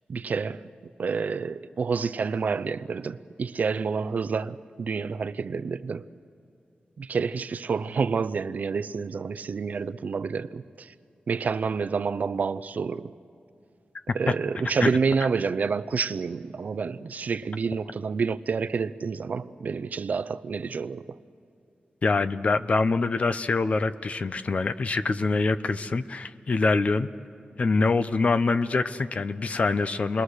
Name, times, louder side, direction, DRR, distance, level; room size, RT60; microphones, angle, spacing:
voice 1, 0.1-6.1 7.0-10.9 11.3-13.1 14.1-21.2, right 5 dB, 60° right, 0.5 m, -29 dB
voice 2, 22.0-27.1 27.6-30.2, left 3 dB, 45° left, 0.6 m, -24 dB
29.0 x 21.0 x 6.5 m
wide cardioid pair, 145°, 3 cm